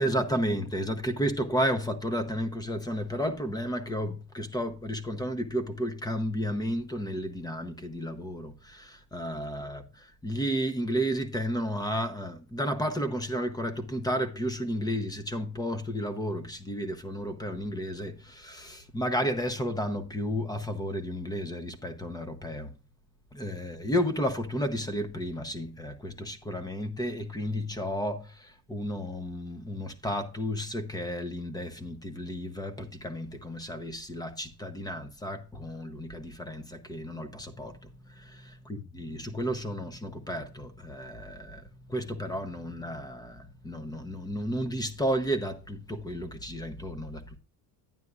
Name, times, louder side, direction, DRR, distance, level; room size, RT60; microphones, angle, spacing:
voice 1, 0.0-22.7 23.3-47.4, equal, 10° left, 0.8 m, -32 dB
11.0 x 9.2 x 2.4 m
cardioid pair, 130°, 40 cm